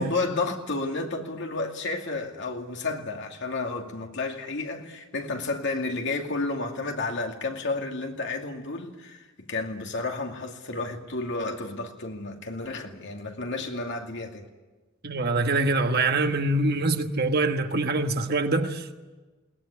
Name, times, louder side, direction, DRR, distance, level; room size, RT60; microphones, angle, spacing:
voice 1, 0.0-14.5, left 3 dB, 60° left, 2.4 m, -31 dB
voice 2, 15.0-19.0, right 2 dB, 50° right, 1.4 m, -24 dB
21.5 x 19.0 x 9.9 m
head